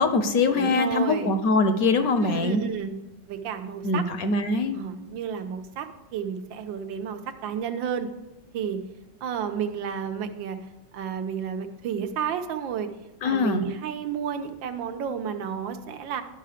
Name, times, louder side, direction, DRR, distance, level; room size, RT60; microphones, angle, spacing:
voice 1, 0.0-2.6 3.8-4.8 13.2-13.6, left 3 dB, 65° left, 9 dB, 1.0 m, -23 dB
voice 2, 0.5-1.3 2.2-3.0 3.3-4.1 4.7-8.1 8.5-8.8 9.2-10.6 10.9-12.9 13.2-16.2, right 7 dB, 90° right, 7 dB, 1.6 m, -31 dB
12.5 x 5.7 x 5.0 m, 0.98 s
omnidirectional pair, 2.0 m